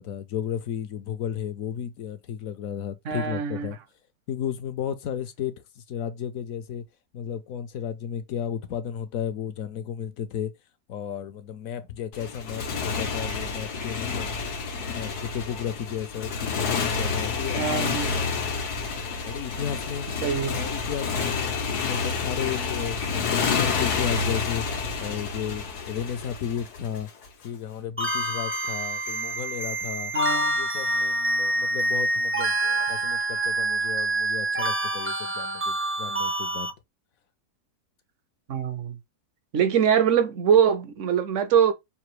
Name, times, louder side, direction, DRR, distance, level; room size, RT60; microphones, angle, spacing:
voice 1, 0.0-3.8 4.3-6.8 7.1-10.5 10.9-14.3 14.8-18.3 19.3-20.1 20.5-24.6 25.0-27.1 27.4-30.1 30.5-36.7, left 9 dB, 65° left, 1.1 m, -33 dB
voice 2, 3.0-3.8 17.6-18.2 20.2-20.6 30.1-30.6 38.5-39.0 39.5-41.7, right 8 dB, 60° right, 1.0 m, -23 dB
Motorcycle, 12.1-27.3, left 5 dB, 85° left, 1.5 m, -29 dB
sound 1, 28.0-36.7, right 1 dB, 15° right, 0.4 m, -26 dB
5.9 x 2.7 x 3.1 m
omnidirectional pair, 1.6 m